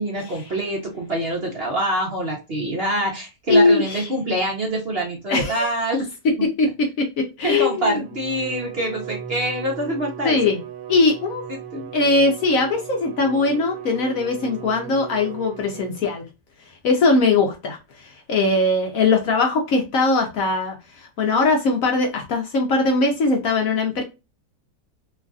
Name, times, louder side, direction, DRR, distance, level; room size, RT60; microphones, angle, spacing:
voice 1, 0.0-6.1 7.4-10.4 11.7-11.9, right 1 dB, 45° right, 0.9 m, -25 dB
voice 2, 3.5-4.1 5.3-5.7 6.4-8.0 10.2-10.6 10.9-11.4 11.9-16.3 16.8-24.0, left 3 dB, 60° left, 1.0 m, -20 dB
Bowed string instrument, 8.0-16.3, right 8 dB, 80° right, 1.2 m, -37 dB
3.1 x 2.4 x 2.3 m
omnidirectional pair, 1.8 m